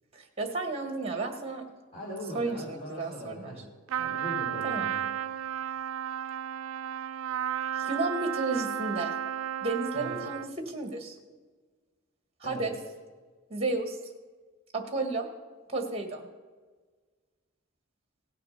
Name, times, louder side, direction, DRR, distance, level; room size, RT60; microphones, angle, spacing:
voice 1, 0.1-1.6 2.3-3.5 4.6-4.9 7.7-9.1 9.6-11.2 12.4-12.7 13.5-14.0 14.7-15.3 15.7-16.2, right 3 dB, 30° right, 4 dB, 1.6 m, -32 dB
voice 2, 1.9-3.6 4.0-5.1 9.9-10.2 12.4-12.7, equal, 30° left, -7 dB, 3.3 m, -40 dB
Trumpet, 3.9-10.6, right 10 dB, 90° right, 0.3 m, -33 dB
17.0 x 6.7 x 5.7 m, 1.4 s
head